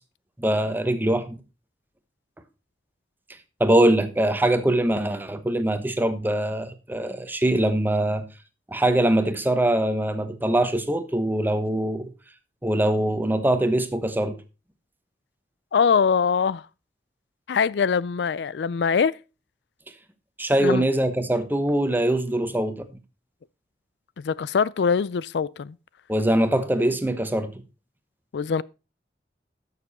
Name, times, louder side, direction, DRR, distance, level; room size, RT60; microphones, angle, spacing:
voice 1, 0.4-1.4 3.6-8.2 8.7-12.1 12.6-14.4 20.4-22.9 26.1-27.5, right 1 dB, 10° right, 1.0 m, -22 dB
voice 2, 15.7-16.6 17.5-19.1 20.6-20.8 24.2-25.7 28.3-28.6, left 6 dB, 75° left, 0.4 m, -23 dB
12.5 x 6.8 x 4.1 m
head